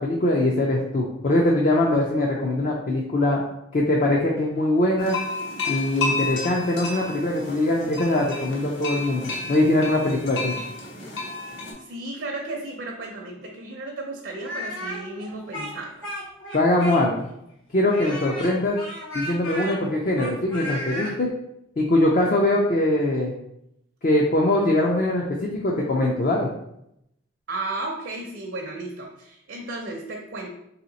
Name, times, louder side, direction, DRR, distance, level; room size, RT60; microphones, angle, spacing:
voice 1, 0.0-3.4 3.7-5.2 5.7-10.5 16.5-17.1 17.7-18.8 19.1-21.3 21.8-23.3 24.0-26.5, left 1 dB, 40° left, -2 dB, 0.4 m, -22 dB
sound 1, 5.0-11.7, left 3 dB, 65° left, 0.9 m, -31 dB
voice 2, 11.8-16.1 27.5-30.5, right 2 dB, 65° right, -1 dB, 0.5 m, -34 dB
Speech, 14.4-17.3 17.9-21.2, equal, 90° left, 1.3 m, -34 dB
3.1 x 2.8 x 4.0 m, 0.80 s
head